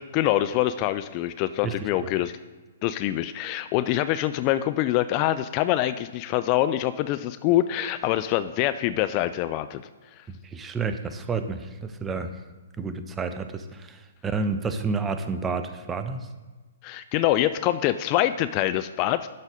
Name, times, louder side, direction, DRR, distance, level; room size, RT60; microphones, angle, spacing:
voice 1, 0.0-2.3 2.8-9.8 16.8-19.3, left 13 dB, 30° left, 12 dB, 0.3 m, -25 dB
voice 2, 1.6-2.1 10.4-12.4 12.8-16.3, right 4 dB, 15° right, 9 dB, 0.6 m, -30 dB
11.5 x 4.0 x 5.1 m, 1.3 s
figure-of-eight pair, 120°, 0 cm